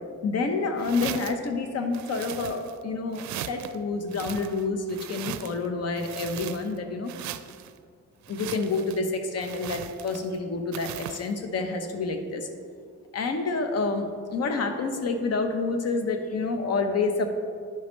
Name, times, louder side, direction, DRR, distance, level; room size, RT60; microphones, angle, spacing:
voice 1, 0.2-7.1 8.3-12.5 13.1-17.3, left 3 dB, 55° left, 6 dB, 0.9 m, -28 dB
sound 1, 0.8-1.5 1.9-2.8 3.1-3.7 4.1-5.7 6.0-6.8 7.1-7.7 8.2-9.0 9.4-10.3 10.7-11.3, right 11 dB, 70° right, 0.5 m, -39 dB
11.0 x 5.1 x 3.2 m, 2.1 s
cardioid pair, 90°, 30 cm